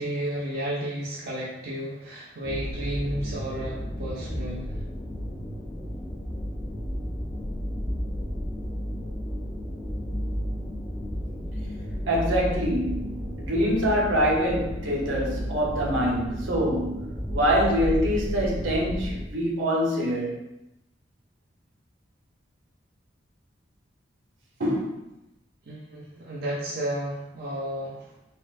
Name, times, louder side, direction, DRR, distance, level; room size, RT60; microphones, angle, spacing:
voice 1, 0.0-4.7 25.7-28.1, right 1 dB, 55° right, -5 dB, 0.5 m, -32 dB
sound 1, 2.4-19.2, equal, 15° left, 0.3 m, -32 dB
voice 2, 12.1-20.4 24.6-24.9, equal, 80° right, -3 dB, 0.9 m, -25 dB
4.0 x 2.0 x 2.4 m, 0.89 s
head